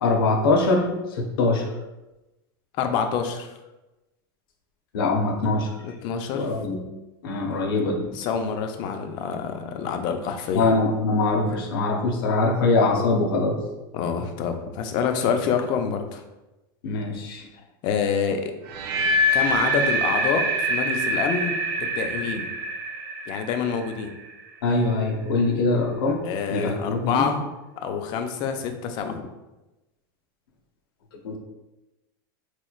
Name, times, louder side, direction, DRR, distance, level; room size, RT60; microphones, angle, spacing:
voice 1, 0.0-0.9 1.2-1.6 4.9-5.7 6.4-6.8 7.2-8.1 10.5-13.6 16.8-17.5 24.6-26.2 26.5-27.3 31.2-31.4, left 3 dB, 90° left, 1 dB, 0.8 m, -22 dB
voice 2, 2.8-3.5 5.8-6.5 8.1-10.7 13.9-16.2 17.8-18.5 19.3-22.5 23.3-24.1 26.2-27.4 27.8-29.3, left 6 dB, 40° left, 6 dB, 0.4 m, -27 dB
sound 1, 18.7-24.7, right 1 dB, 75° right, 0.6 m, -25 dB
4.1 x 3.0 x 2.3 m, 1.0 s
supercardioid pair, 155°, 12 cm